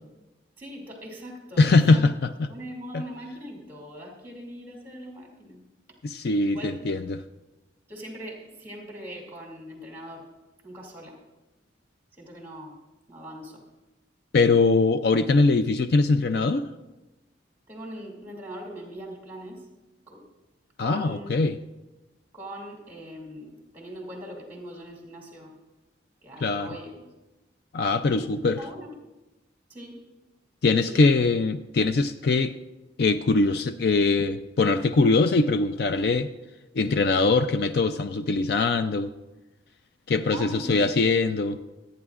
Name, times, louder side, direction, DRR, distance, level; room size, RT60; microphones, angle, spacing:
voice 1, 0.6-2.0 2.4-5.6 5.9-6.0 6.5-6.7 7.9-10.2 10.6-11.2 12.2-12.7 13.1-13.6 17.7-19.6 20.1-20.2 20.8-21.4 22.3-25.5 26.2-27.1 28.1-28.9 29.7-30.0 30.7-31.0 40.3-40.9, equal, 10° right, -1 dB, 2.5 m, -41 dB
voice 2, 1.6-2.5 2.9-3.0 6.0-7.2 14.3-16.7 20.8-21.6 26.4-26.7 27.7-28.6 30.6-32.5 33.0-36.3 36.7-39.1 40.1-41.6, left 3 dB, 55° left, 10 dB, 0.4 m, -22 dB
25.0 x 9.4 x 2.4 m, 1.0 s
head